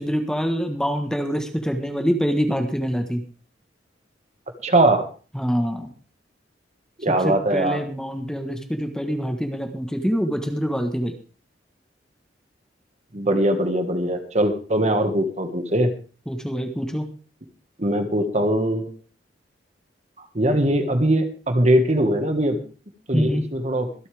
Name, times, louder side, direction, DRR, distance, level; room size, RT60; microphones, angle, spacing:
voice 1, 0.0-3.2 5.3-5.9 7.2-11.1 16.3-17.1 23.1-23.4, equal, 5° left, 6 dB, 1.4 m, -25 dB
voice 2, 4.6-5.1 7.0-7.8 13.1-15.9 17.8-18.9 20.2-22.6 23.1-23.9, right 1 dB, 40° right, 6 dB, 1.8 m, -21 dB
24.5 x 8.4 x 3.5 m, 0.37 s
head